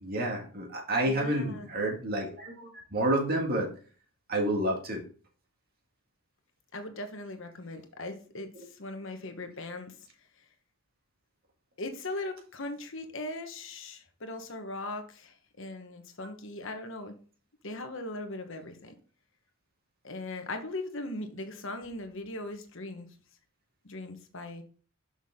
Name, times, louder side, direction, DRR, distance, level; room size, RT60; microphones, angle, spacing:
voice 1, 0.0-3.7 4.3-5.0 8.6-8.7, right 1 dB, 45° right, 1 dB, 1.9 m, -29 dB
voice 2, 1.1-1.7 6.7-9.9 11.8-17.2 17.6-18.9 20.0-23.1 23.8-24.6, left 2 dB, 65° left, 6 dB, 1.2 m, -39 dB
6.0 x 6.0 x 3.7 m, 0.41 s
head